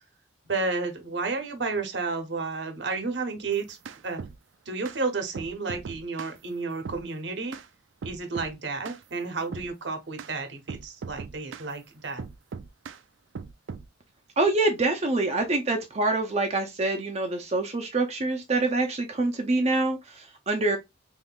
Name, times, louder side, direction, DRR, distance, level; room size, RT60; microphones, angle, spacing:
voice 1, 0.5-3.8 4.0-4.2 4.7-7.6 8.0-12.2, right 4 dB, 65° right, 0.9 m, -31 dB
sound 1, 3.5-4.4 4.9-5.0 5.4-6.4 6.9-7.0 7.5-7.7 8.0-8.5 8.9-9.0 9.5-9.7 10.2-10.3 10.7-11.7 12.2-13.0 13.4-13.9, right 5 dB, 85° right, 0.4 m, -39 dB
voice 2, 14.4-20.8, right 2 dB, 35° right, 0.5 m, -26 dB
3.6 x 3.1 x 2.3 m
head